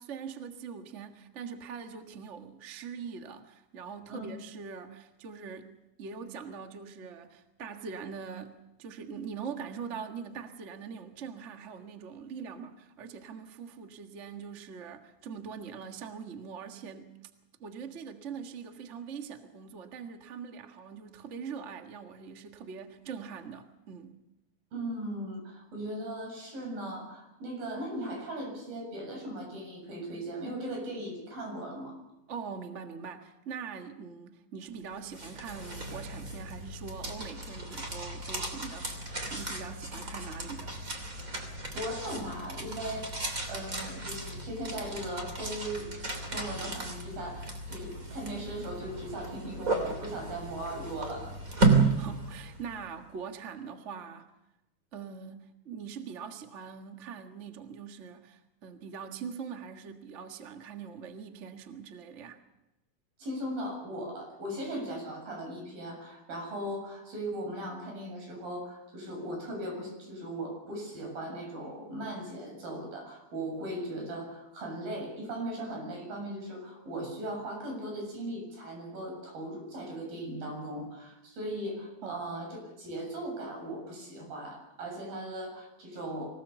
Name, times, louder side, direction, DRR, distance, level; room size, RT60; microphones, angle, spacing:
voice 1, 0.0-5.7 6.0-17.2 17.6-24.2 32.3-38.9 39.3-40.8 52.0-54.3 54.9-62.4 82.0-82.2, right 6 dB, 85° right, 5 dB, 0.6 m, -42 dB
voice 2, 24.7-32.0 39.9-40.0 41.7-43.2 43.5-45.9 46.3-51.3 63.2-86.3, right 1 dB, 70° right, 2 dB, 9.1 m, -38 dB
sound 1, 34.9-52.9, right 3 dB, 25° right, 3.0 m, -33 dB
25.0 x 18.0 x 7.0 m, 0.93 s
omnidirectional pair, 4.3 m